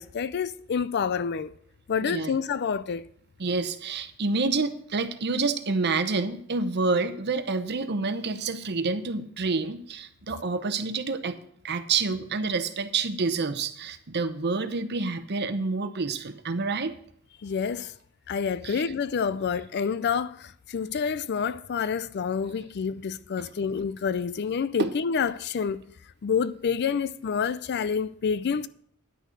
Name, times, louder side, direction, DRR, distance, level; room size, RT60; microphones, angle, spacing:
voice 1, 0.0-1.5 1.9-3.1 17.4-17.9 18.3-25.8 26.2-28.7, left 6 dB, 50° left, 0.4 m, -28 dB
voice 2, 2.0-2.3 3.4-11.4 11.6-16.9 18.6-18.8 24.8-24.9, right 4 dB, 50° right, 0.9 m, -28 dB
10.0 x 6.4 x 6.4 m
head